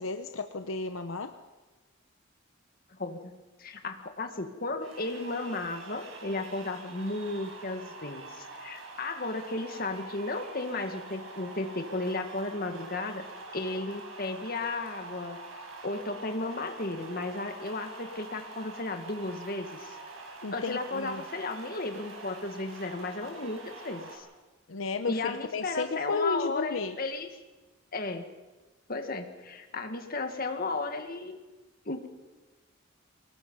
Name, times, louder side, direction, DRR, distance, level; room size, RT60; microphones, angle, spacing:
voice 1, 0.0-1.3 20.4-21.2 24.7-27.0, left 4 dB, 75° left, 8 dB, 0.8 m, -33 dB
voice 2, 2.9-13.3 13.5-15.4 15.8-20.0 20.5-24.3 25.1-27.3 27.9-28.3 28.9-31.4 31.9-32.1, left 2 dB, 45° left, 6 dB, 1.8 m, -34 dB
sound 1, 4.8-24.2, right 3 dB, 85° right, 5.1 m, -45 dB
24.0 x 20.5 x 5.5 m, 1.2 s
head